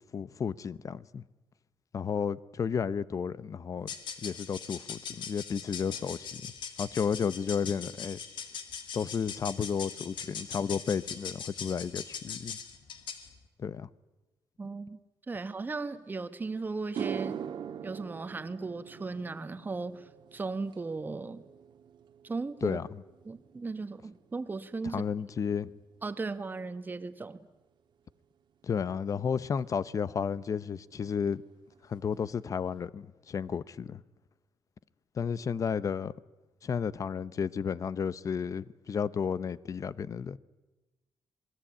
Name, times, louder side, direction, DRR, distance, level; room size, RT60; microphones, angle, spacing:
voice 1, 0.1-1.2 1.9-3.9 4.2-6.4 6.8-8.2 8.9-12.6 13.6-13.9 22.6-22.9 24.9-25.7 28.6-31.4 31.9-34.0 35.2-36.1 36.6-40.4, left 6 dB, 40° left, 0.7 m, -32 dB
sound 1, 3.8-13.3, left 7 dB, 75° left, 2.4 m, -41 dB
voice 2, 14.6-15.0 15.3-17.4 17.8-21.4 22.2-22.8 23.2-25.0 26.0-27.4, right 3 dB, 25° right, 1.3 m, -36 dB
sound 2, 16.2-16.3 16.8-25.3 25.6-26.0 29.6-29.7 31.3-31.4 31.7-31.9 32.1-32.7, right 8 dB, 70° right, 1.5 m, -43 dB
27.0 x 20.5 x 8.7 m
wide cardioid pair, 145°, 8 cm